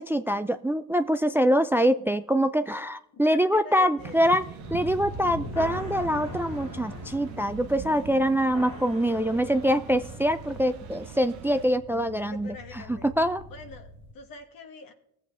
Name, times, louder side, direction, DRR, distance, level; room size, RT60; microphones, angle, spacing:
voice 1, 0.0-4.4 4.7-13.4, equal, 5° right, 11 dB, 0.5 m, -24 dB
voice 2, 3.5-4.2 12.2-13.1 13.5-14.9, left 4 dB, 65° left, 7 dB, 1.7 m, -44 dB
sound 1, 4.0-11.7, right 7 dB, 65° right, 1.1 m, -43 dB
sound 2, 4.6-14.1, left 1 dB, 90° left, 3.8 m, -41 dB
20.5 x 7.6 x 3.5 m, 0.78 s
hypercardioid pair, 60°, 37 cm